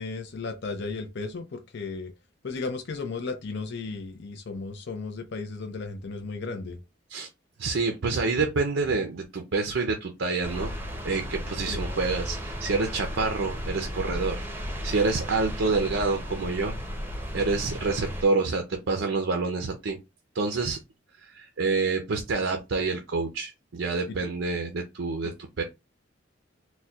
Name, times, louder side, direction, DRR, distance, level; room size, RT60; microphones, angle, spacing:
voice 1, 0.0-2.1 2.4-6.8 11.7-11.9 24.1-24.3 25.6-25.7, left 4 dB, 65° left, 0.5 m, -35 dB
voice 2, 7.6-10.7 11.0-14.3 14.8-16.7 17.3-20.0 20.3-20.8 21.2-25.3 25.6-25.7, right 3 dB, 70° right, 0.5 m, -27 dB
sound 1, 10.4-18.2, equal, 10° right, 0.6 m, -34 dB
4.1 x 2.2 x 2.3 m
head